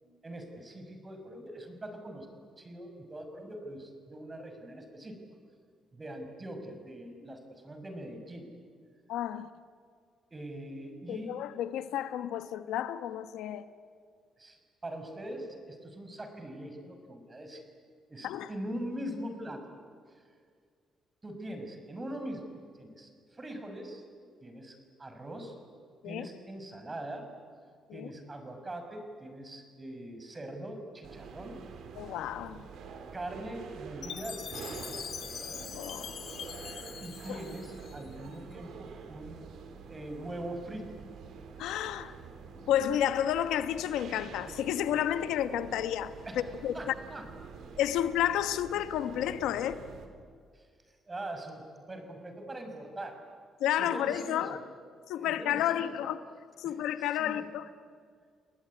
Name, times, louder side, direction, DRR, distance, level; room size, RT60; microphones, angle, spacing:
voice 1, 0.2-2.3 2.6-5.2 5.9-8.5 10.3-11.3 14.4-17.7 18.1-19.6 20.1-20.2 21.2-22.5 22.8-24.0 24.4-25.5 26.0-27.3 27.9-31.6 33.1-35.0 37.0-39.4 39.9-40.8 46.2-47.3 50.5-50.7 51.1-53.2 53.7-54.6 55.1-55.9 56.6-57.5, right 1 dB, 25° right, 6.2 m, -42 dB
voice 2, 9.1-9.5 11.1-13.7 18.2-18.5 26.0-26.3 27.9-28.1 31.9-32.6 35.7-36.1 37.3-37.4 41.6-42.2 42.7-46.1 46.6-46.9 47.8-49.8 53.6-54.6 55.1-56.2 56.6-57.7, left 11 dB, 90° left, 1.2 m, -31 dB
sound 1, 31.0-50.1, right 5 dB, 75° right, 3.7 m, -46 dB
Chime, 34.0-38.3, left 8 dB, 60° left, 1.3 m, -43 dB
30.0 x 20.0 x 9.8 m
cardioid pair, 90°, 0 cm